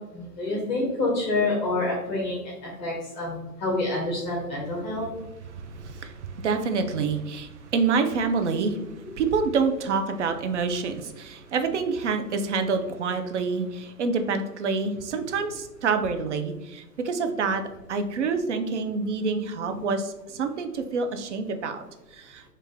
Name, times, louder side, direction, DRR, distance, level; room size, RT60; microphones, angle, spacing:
voice 1, 0.1-5.1 19.6-19.8, left 2 dB, 25° left, -3 dB, 0.8 m, -28 dB
voice 2, 5.5-17.6 17.9-21.8 22.1-22.4, right 4 dB, 50° right, 7 dB, 0.5 m, -27 dB
4.4 x 2.5 x 3.2 m, 1.0 s
figure-of-eight pair, 125°, 49 cm